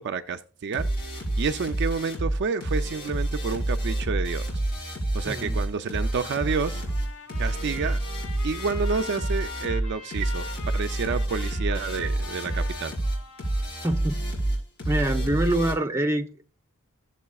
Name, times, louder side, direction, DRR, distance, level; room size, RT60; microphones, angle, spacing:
voice 1, 0.0-4.6 5.1-6.8 7.4-8.0 8.4-12.9, right 5 dB, 50° right, 0.4 m, -30 dB
sound 1, 0.7-15.7, right 1 dB, 45° left, 4.5 m, -28 dB
voice 2, 5.2-5.6 13.8-14.2 14.9-16.4, right 1 dB, 10° right, 0.8 m, -25 dB
Trumpet, 6.0-14.2, left 5 dB, 90° left, 4.8 m, -43 dB
15.0 x 7.3 x 2.3 m
head